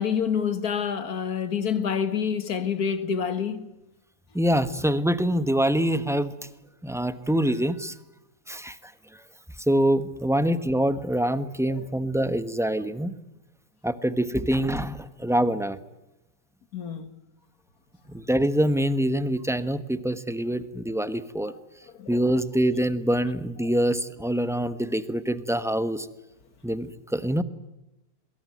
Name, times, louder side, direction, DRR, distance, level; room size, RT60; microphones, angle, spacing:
voice 1, 0.0-3.7 11.7-11.9 16.7-17.1 22.0-22.2 23.6-23.7, left 7 dB, 75° left, 2.2 m, -27 dB
voice 2, 4.3-6.3 6.8-7.9 8.5-8.8 9.7-13.1 13.8-15.8 18.1-21.5 22.1-26.1 26.6-27.4, right 1 dB, ahead, 1.0 m, -25 dB
23.5 x 22.5 x 9.3 m
omnidirectional pair, 1.6 m